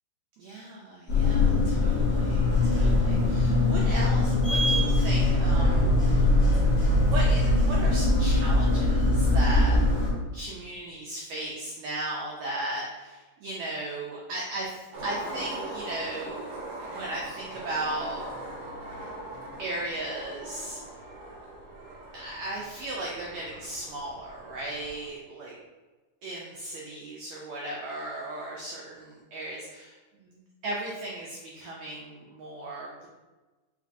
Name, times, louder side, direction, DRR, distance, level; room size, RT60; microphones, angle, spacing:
voice 1, 0.4-6.3 7.0-9.8 10.3-16.6 16.9-18.3 19.6-20.8 22.1-25.5 26.2-30.4 30.6-33.1, right 2 dB, 85° right, -3 dB, 1.6 m, -36 dB
sound 1, 1.1-10.1, left 2 dB, 85° left, 0.5 m, -22 dB
Skateboard, 14.9-25.1, right 1 dB, 65° right, 1.0 m, -40 dB
5.2 x 3.2 x 2.6 m, 1.2 s
omnidirectional pair, 3.8 m